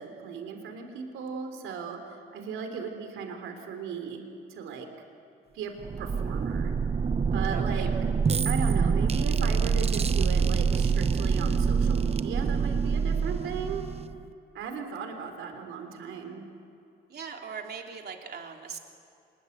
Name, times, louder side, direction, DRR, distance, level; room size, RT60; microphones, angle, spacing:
voice 1, 0.0-4.2 4.5-4.9 5.5-5.7 6.0-6.7 7.3-7.9 8.4-13.8 14.5-16.4, right 6 dB, 85° right, 5 dB, 3.5 m, -37 dB
sound 1, 5.8-14.3, right 5 dB, 30° right, 0.8 m, -26 dB
voice 2, 7.5-7.9 17.1-18.8, right 6 dB, 55° right, 2 dB, 3.3 m, -40 dB
25.5 x 22.0 x 8.1 m, 2.7 s
cardioid pair, 90°, 20 cm